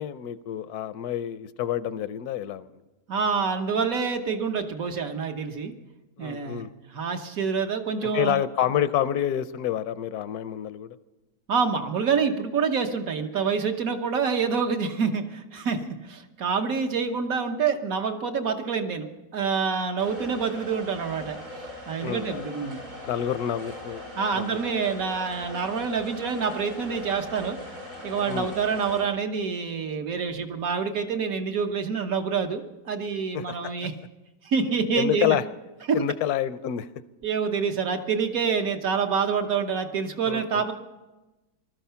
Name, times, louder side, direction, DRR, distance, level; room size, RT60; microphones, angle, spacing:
voice 1, 0.0-2.7 6.2-6.7 8.0-11.0 22.0-22.5 23.1-24.0 24.3-24.8 28.3-28.5 33.3-33.7 35.0-35.4 35.9-36.9 40.3-40.7, left 10 dB, 75° left, 14 dB, 1.2 m, -28 dB
voice 2, 3.1-5.7 6.2-6.6 6.9-8.4 11.5-22.8 24.2-27.6 28.0-33.9 34.4-35.4 35.9-36.0 37.2-40.7, right 5 dB, 65° right, 6 dB, 1.5 m, -27 dB
sound 1, 20.0-29.0, left 1 dB, 90° right, 6.7 m, -40 dB
19.5 x 13.0 x 5.7 m, 1.1 s
omnidirectional pair, 1.7 m